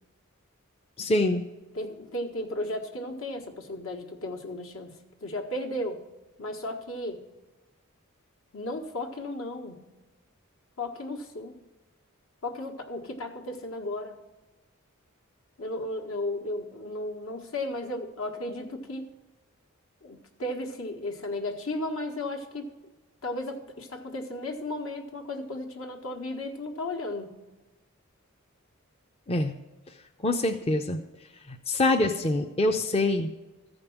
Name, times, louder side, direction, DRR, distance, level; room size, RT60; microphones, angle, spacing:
voice 1, 1.0-1.4 29.3-29.5 30.2-31.0 31.7-33.3, left 2 dB, 30° left, 4 dB, 0.6 m, -25 dB
voice 2, 1.7-4.9 5.2-6.0 6.4-7.2 8.5-9.8 10.8-11.5 12.4-14.2 15.6-19.0 20.0-22.7 23.2-27.3, left 1 dB, 70° left, 4 dB, 1.5 m, -34 dB
14.0 x 5.2 x 7.2 m, 1.1 s
head